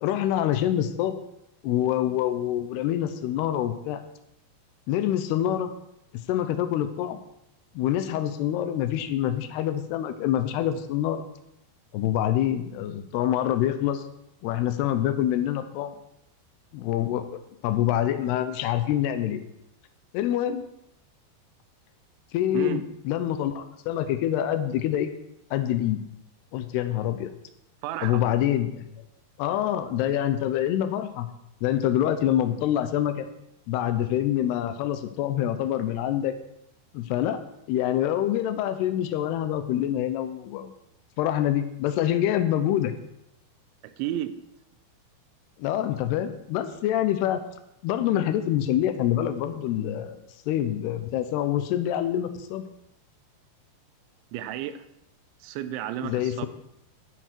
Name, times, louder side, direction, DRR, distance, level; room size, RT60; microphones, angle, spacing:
voice 1, 0.0-1.2 1.6-4.0 4.9-5.7 6.3-7.2 7.8-11.2 11.9-14.0 14.4-16.0 16.7-19.4 20.1-20.6 22.3-25.1 25.5-26.0 26.5-27.3 28.0-28.8 29.4-31.3 31.6-33.3 33.7-36.3 36.9-37.4 37.7-40.7 41.2-42.9 45.6-47.4 47.8-50.2 50.5-52.6 56.0-56.5, left 11 dB, 75° left, 10 dB, 2.6 m, -26 dB
voice 2, 27.8-28.2 44.0-44.3 54.3-54.8 55.4-56.5, right 12 dB, 90° right, 11 dB, 3.1 m, -32 dB
10.5 x 10.0 x 4.5 m, 0.82 s
omnidirectional pair, 5.2 m